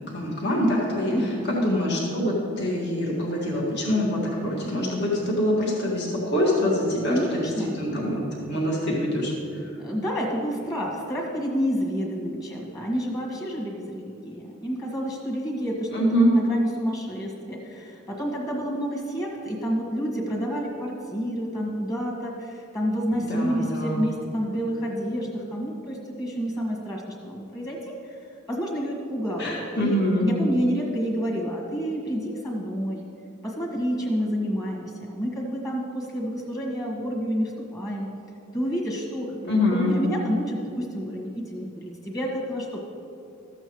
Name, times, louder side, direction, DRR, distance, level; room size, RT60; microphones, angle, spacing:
voice 1, 0.0-1.1 1.5-9.3 15.9-16.3 23.1-24.0 29.4-30.3 39.5-39.9, left 1 dB, 55° left, -4 dB, 1.8 m, -25 dB
voice 2, 1.1-1.6 7.1-7.7 9.8-27.9 28.5-33.0 33.4-38.1 38.5-42.8, equal, 20° left, -2 dB, 1.6 m, -29 dB
13.5 x 7.9 x 3.1 m, 2.6 s
head